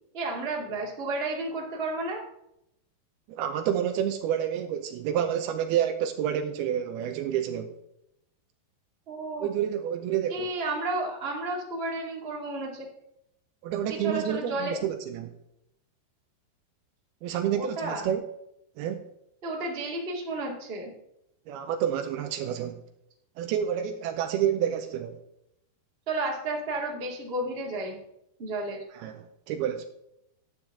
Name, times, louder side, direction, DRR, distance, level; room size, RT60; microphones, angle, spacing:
voice 1, 0.1-2.2 9.1-9.5 10.3-12.9 13.9-14.8 17.5-18.1 19.4-20.9 26.1-28.0 28.4-28.8, right 2 dB, 25° right, -2 dB, 1.5 m, -32 dB
voice 2, 3.3-7.8 9.4-10.5 13.6-15.3 17.2-18.2 18.8-19.0 21.5-22.8 23.4-25.2 28.9-29.9, right 9 dB, 80° right, 8 dB, 2.5 m, -29 dB
12.0 x 8.8 x 3.7 m, 0.80 s
omnidirectional pair, 4.7 m